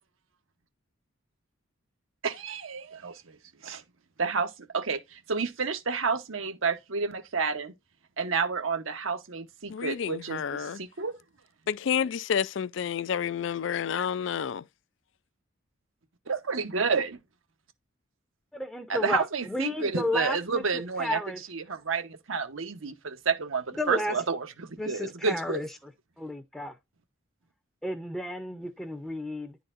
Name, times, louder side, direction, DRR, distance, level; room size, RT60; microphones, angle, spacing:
voice 1, 2.2-3.4 3.6-3.8 4.2-7.7 8.2-11.2 16.3-17.2 18.9-21.2 21.5-25.6, right 5 dB, 75° right, 0.9 m, -30 dB
voice 2, 9.7-10.8 11.7-14.6, left 8 dB, 60° left, 0.3 m, -30 dB
voice 3, 18.5-21.4 23.8-24.1 24.8-25.7 26.2-26.7 27.8-29.6, left 1 dB, 5° left, 0.6 m, -32 dB
11.0 x 4.0 x 2.5 m
head